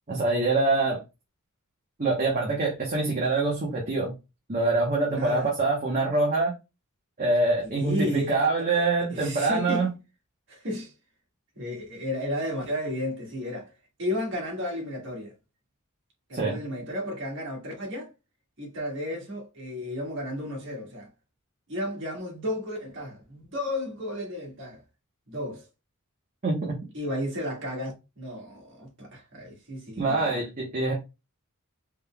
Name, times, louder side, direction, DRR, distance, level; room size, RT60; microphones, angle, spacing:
voice 1, 0.1-1.0 2.0-4.1 4.5-6.5 7.2-9.9 16.3-16.6 26.4-26.8 30.0-30.9, right 3 dB, 35° right, 1.0 m, -25 dB
voice 2, 5.1-5.5 7.7-9.9 10.5-10.9 11.5-13.7 14.0-15.3 16.3-18.1 18.6-21.1 21.7-24.8 25.3-25.7 26.9-30.4, left 1 dB, 55° right, 1.6 m, -33 dB
3.8 x 3.4 x 2.3 m
head